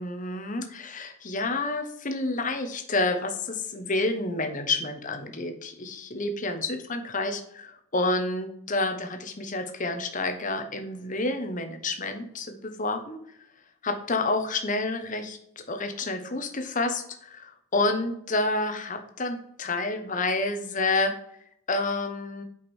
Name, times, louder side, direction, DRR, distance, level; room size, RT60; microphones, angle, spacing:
voice 1, 0.0-13.2 13.8-15.4 15.7-21.1 21.7-22.4, left 2 dB, 35° left, 7 dB, 1.0 m, -29 dB
8.6 x 5.2 x 4.3 m, 0.73 s
head